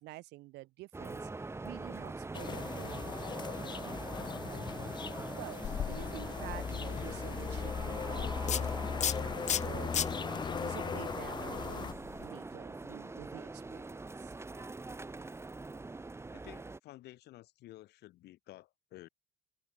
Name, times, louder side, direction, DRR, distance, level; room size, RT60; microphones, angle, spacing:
voice 1, 0.0-4.6 5.3-10.1 10.6-11.9 12.2-14.3, right 20 dB, 85° right, 1.4 m, -49 dB
sound 1, 0.9-16.8, right 3 dB, 15° right, 1.6 m, -43 dB
sound 2, 2.3-11.9, left 6 dB, 25° left, 0.6 m, -39 dB
sound 3, 5.6-12.3, left 9 dB, 45° left, 1.0 m, -38 dB
voice 2, 16.3-19.1, left 16 dB, 80° left, 2.1 m, -53 dB
cardioid pair, 110°, 17 cm